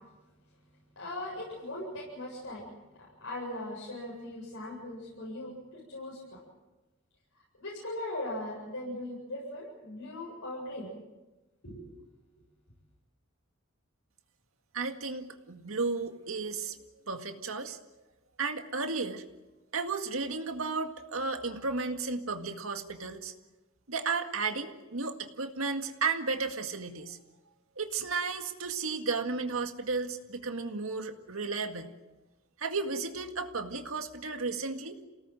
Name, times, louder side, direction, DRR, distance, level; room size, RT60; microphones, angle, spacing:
voice 1, 1.0-2.6 2.9-6.4 7.6-11.0 11.6-11.9, left 1 dB, 85° left, -5 dB, 7.8 m, -39 dB
voice 2, 14.7-16.8 17.1-17.8 18.4-19.2 19.7-23.3 23.9-27.2 27.8-31.9 32.6-35.0, right 4 dB, 90° right, 6 dB, 2.0 m, -33 dB
28.5 x 18.0 x 7.8 m, 1.1 s
head